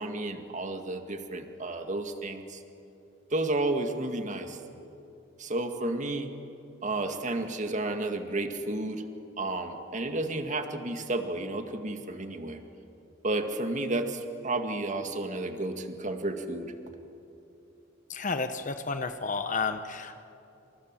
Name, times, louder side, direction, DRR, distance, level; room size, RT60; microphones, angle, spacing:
voice 1, 0.0-2.6 3.3-4.6 5.4-6.3 6.8-9.0 9.4-12.6 13.2-16.7, right 2 dB, 40° right, 6 dB, 2.0 m, -32 dB
voice 2, 18.1-20.2, left 4 dB, 45° left, 8 dB, 1.1 m, -31 dB
28.0 x 27.5 x 7.6 m, 2.8 s
head